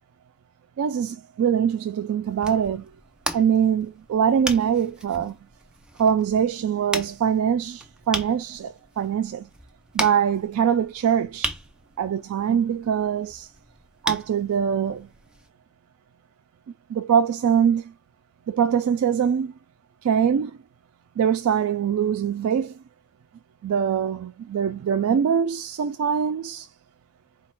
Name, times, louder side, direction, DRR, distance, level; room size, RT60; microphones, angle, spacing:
voice 1, 0.8-2.9 3.3-5.4 6.0-9.5 9.9-11.5 12.0-13.5 14.0-15.1 16.9-17.9 18.5-19.5 20.0-20.6 21.2-22.8 23.6-26.7, right 8 dB, 80° right, 0.3 m, -23 dB
sound 1, 2.2-15.5, right 1 dB, 5° right, 0.4 m, -37 dB
4.0 x 2.3 x 4.4 m
head